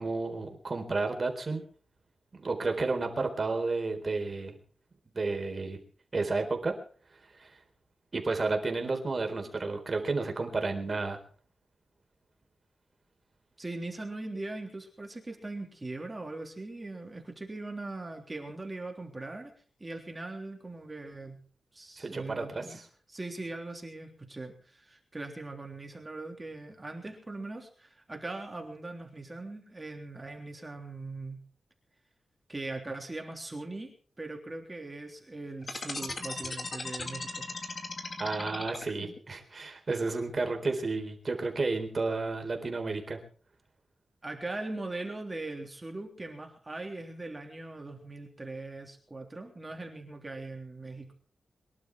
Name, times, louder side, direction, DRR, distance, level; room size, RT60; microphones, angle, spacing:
voice 1, 0.0-1.6 2.3-4.6 5.1-5.8 6.1-6.7 7.4-7.6 8.1-11.2 22.0-22.6 38.2-43.2, right 3 dB, 40° right, 5 dB, 4.0 m, -31 dB
voice 2, 13.6-19.5 19.8-21.4 21.7-22.8 23.1-31.4 32.5-37.5 44.2-51.1, right 2 dB, 20° right, 2 dB, 3.4 m, -40 dB
sound 1, 35.6-39.2, left 3 dB, 35° left, 2.3 m, -37 dB
23.5 x 11.5 x 4.7 m, 0.43 s
wide cardioid pair, 110°, 0 cm